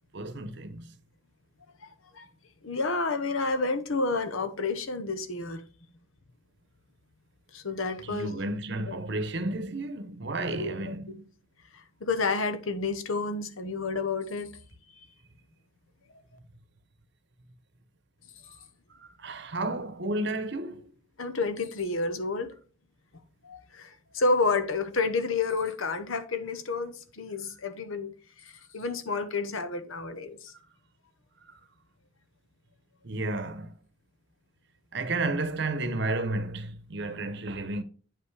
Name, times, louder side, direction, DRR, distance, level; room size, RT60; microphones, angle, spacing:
voice 1, 0.1-0.9 8.0-11.3 18.9-20.9 31.5-31.6 33.0-33.8 34.9-37.8, right 2 dB, 55° right, 0.8 m, -32 dB
voice 2, 2.6-5.6 7.5-8.4 10.5-10.9 11.7-14.5 21.2-22.5 23.4-28.1 28.4-30.5, left 3 dB, 80° left, 1.0 m, -30 dB
8.8 x 5.6 x 3.3 m
head